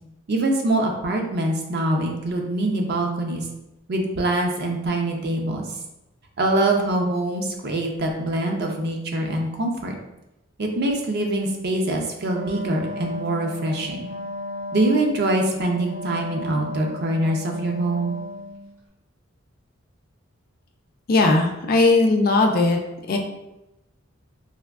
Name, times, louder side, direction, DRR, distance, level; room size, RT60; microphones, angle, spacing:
voice 1, 0.3-3.4 3.9-5.7 6.4-9.9 10.6-14.1 14.7-18.2, right 1 dB, 50° right, 1 dB, 0.5 m, -24 dB
Wind instrument woodwind instrument, 12.1-18.6, left 1 dB, 80° right, 1.0 m, -35 dB
voice 2, 21.1-22.8 23.1-23.2, left 2 dB, 45° left, 3 dB, 0.4 m, -18 dB
3.4 x 2.5 x 2.4 m, 0.92 s
head